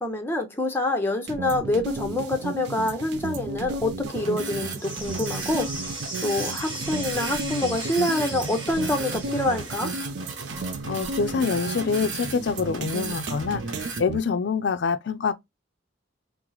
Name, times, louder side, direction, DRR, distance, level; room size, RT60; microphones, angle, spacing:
voice 1, 0.0-5.7 6.2-9.9, left 2 dB, 10° left, 0.6 m, -26 dB
sound 1, 1.3-14.2, right 3 dB, 55° right, 0.4 m, -34 dB
sound 2, 4.1-14.0, right 4 dB, 70° right, 0.8 m, -37 dB
sound 3, 4.8-10.0, right 2 dB, 25° right, 0.8 m, -37 dB
voice 2, 10.8-15.3, left 5 dB, 60° left, 0.4 m, -26 dB
2.9 x 2.0 x 3.8 m
head